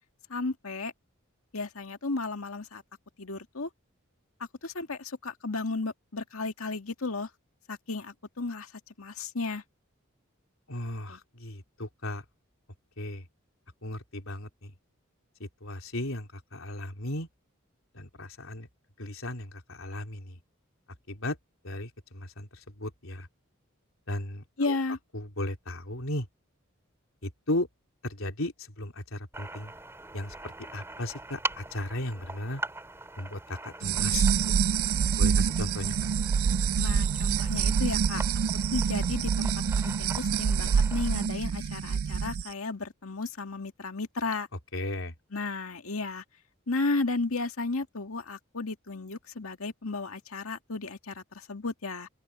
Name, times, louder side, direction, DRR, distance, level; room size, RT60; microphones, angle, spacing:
voice 1, 0.3-0.9 1.5-2.8 3.2-3.7 4.6-7.3 7.7-8.7 9.0-9.6 11.1-11.2 24.6-25.0 36.8-38.2 38.7-39.5 39.8-44.5 45.3-46.2 46.7-52.1, left 3 dB, 90° left, 2.1 m, -33 dB
voice 2, 10.7-12.2 13.0-13.2 13.8-14.7 15.6-17.3 17.9-18.7 19.0-20.4 21.1-21.4 21.6-22.5 22.8-23.3 24.1-24.8 25.1-26.3 27.2-27.7 28.0-29.7 30.1-30.3 30.7-32.6 33.2-34.6 35.2-36.0 44.7-45.1, left 1 dB, 75° left, 3.6 m, -35 dB
sound 1, 29.3-41.3, right 2 dB, 10° right, 2.5 m, -42 dB
sound 2, 33.8-42.4, right 6 dB, 85° right, 0.4 m, -26 dB
open air
head